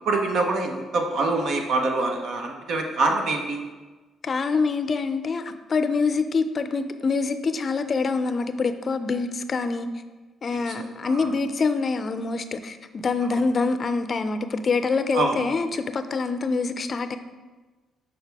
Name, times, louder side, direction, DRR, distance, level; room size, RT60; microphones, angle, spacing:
voice 1, 0.1-3.6 10.7-11.3 13.3-13.4 15.1-15.4, right 3 dB, 70° right, 3 dB, 0.9 m, -25 dB
voice 2, 4.2-9.9 10.4-17.2, left 4 dB, 45° left, 10 dB, 0.4 m, -25 dB
6.6 x 5.1 x 3.4 m, 1.2 s
cardioid pair, 90°, 0 cm